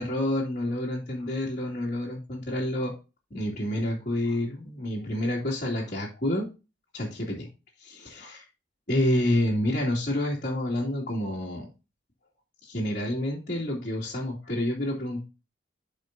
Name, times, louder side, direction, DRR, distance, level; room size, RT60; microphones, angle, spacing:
voice 1, 0.0-2.9 3.3-6.5 6.9-7.5 7.8-8.4 8.9-11.7 12.6-15.3, left 1 dB, 45° left, -8 dB, 2.5 m, -28 dB
12.5 x 5.2 x 2.6 m, 0.30 s
head